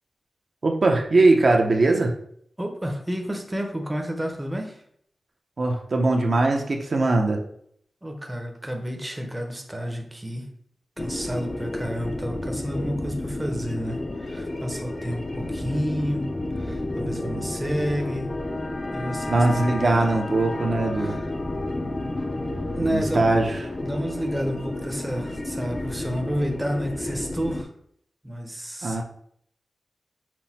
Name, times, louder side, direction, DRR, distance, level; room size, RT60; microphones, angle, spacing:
voice 1, 0.6-2.1 5.6-7.4 19.3-21.2 22.8-23.6 28.8-29.0, right 2 dB, 50° right, 2 dB, 0.7 m, -21 dB
voice 2, 2.6-4.8 8.0-10.5 11.0-18.3 18.9-20.1 21.0-21.2 22.7-23.4 23.8-27.7 28.2-29.0, equal, 10° right, 3 dB, 0.7 m, -30 dB
sound 1, 11.0-27.6, left 2 dB, 30° left, 0.5 m, -31 dB
5.9 x 2.1 x 4.1 m, 0.67 s
wide cardioid pair, 110°, 0 cm